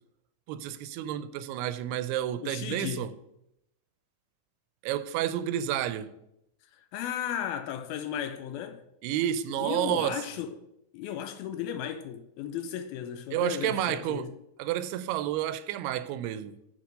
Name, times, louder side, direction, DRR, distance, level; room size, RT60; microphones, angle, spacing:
voice 1, 0.5-3.1 4.8-6.1 9.0-10.2 13.3-14.3 14.6-16.6, right 11 dB, 85° right, 2.5 m, -30 dB
voice 2, 2.4-3.1 6.7-8.8 9.6-10.7 10.9-14.3, left 9 dB, 80° left, 2.3 m, -35 dB
7.2 x 5.9 x 6.4 m
omnidirectional pair, 4.6 m